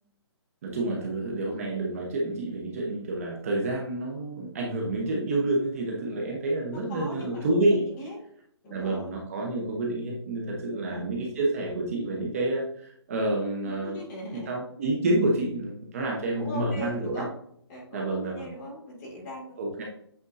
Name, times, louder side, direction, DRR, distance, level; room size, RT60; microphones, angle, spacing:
voice 1, 0.6-7.8 8.7-14.0 14.3-17.2 17.9-18.5 19.6-19.8, right 2 dB, 30° right, -1 dB, 1.0 m, -28 dB
voice 2, 6.7-8.2 8.6-9.1 10.7-11.1 13.6-14.5 16.3-17.3 17.7-19.8, left 1 dB, 20° left, -5 dB, 2.3 m, -40 dB
8.3 x 4.4 x 2.7 m, 0.67 s
hypercardioid pair, 170°, 14 cm